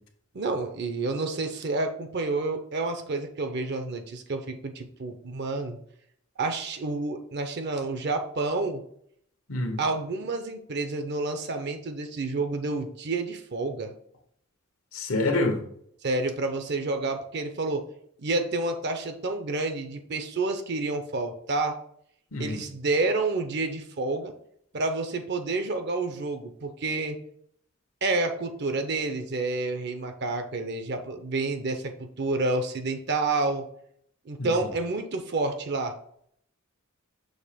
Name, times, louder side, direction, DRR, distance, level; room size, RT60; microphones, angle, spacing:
voice 1, 0.3-5.8 6.4-8.8 9.8-13.9 16.0-17.8 18.2-21.8 22.4-24.3 24.7-27.2 28.0-33.7 34.3-35.9, right 3 dB, 55° right, 6 dB, 0.6 m, -29 dB
voice 2, 9.5-9.8 14.9-15.6 22.3-22.6 34.4-34.5, left 2 dB, 85° left, 4 dB, 1.2 m, -26 dB
6.5 x 2.9 x 5.0 m, 0.67 s
head